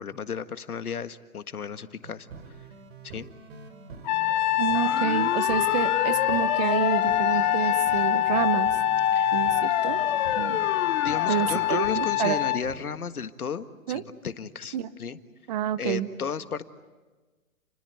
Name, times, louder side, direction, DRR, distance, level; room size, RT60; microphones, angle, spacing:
voice 1, 0.0-2.3 3.0-3.3 9.1-9.3 11.0-15.2 15.8-16.6, left 6 dB, 80° left, 10 dB, 1.7 m, -34 dB
sound 1, 2.0-12.9, right 4 dB, 55° right, 4.3 m, -45 dB
Trumpet, 4.0-12.6, left 14 dB, 30° left, 0.9 m, -25 dB
voice 2, 4.6-8.7 9.3-10.0 10.4-10.6 11.3-12.4 13.9-14.0 14.7-14.9 15.5-16.1, right 11 dB, 30° right, 13 dB, 1.0 m, -28 dB
sound 2, 4.7-11.9, left 9 dB, 60° left, 1.0 m, -29 dB
30.0 x 21.0 x 9.4 m, 1.3 s
hypercardioid pair, 145°, 44 cm